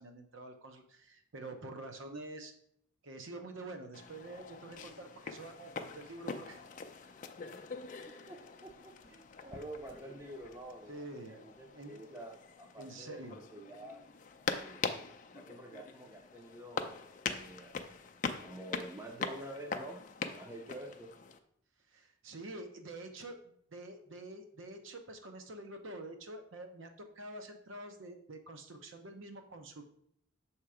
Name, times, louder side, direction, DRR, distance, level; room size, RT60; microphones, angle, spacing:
voice 1, 0.0-2.5 3.0-6.6 7.9-8.0 10.9-11.4 11.7-12.1 12.8-13.4 21.9-29.8, right 2 dB, 75° right, 5 dB, 0.8 m, -47 dB
sound 1, 3.9-21.4, left 5 dB, 40° left, 0.4 m, -43 dB
voice 2, 8.3-14.1 14.5-14.8 15.3-16.9 17.2-17.9 18.4-20.0 20.3-21.1, right 1 dB, 15° right, 3 dB, 0.5 m, -48 dB
6.7 x 2.9 x 4.8 m, 0.68 s
head